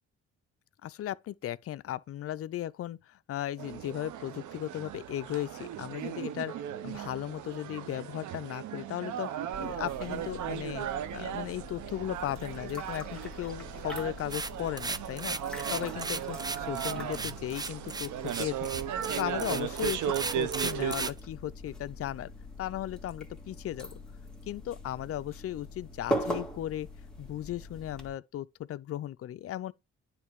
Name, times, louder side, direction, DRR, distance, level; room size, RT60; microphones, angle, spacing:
voice 1, 0.8-6.5 6.8-15.4 15.7-18.8 19.2-22.3 22.6-23.9 24.5-26.9 27.2-29.7, left 12 dB, 50° left, 0.5 m, -36 dB
sound 1, 3.6-21.1, right 11 dB, 75° right, 0.8 m, -37 dB
sound 2, 9.5-28.1, equal, ahead, 1.8 m, -42 dB
sound 3, 14.3-21.2, right 3 dB, 15° right, 0.4 m, -35 dB
9.5 x 3.2 x 4.6 m
cardioid pair, 90°, 30 cm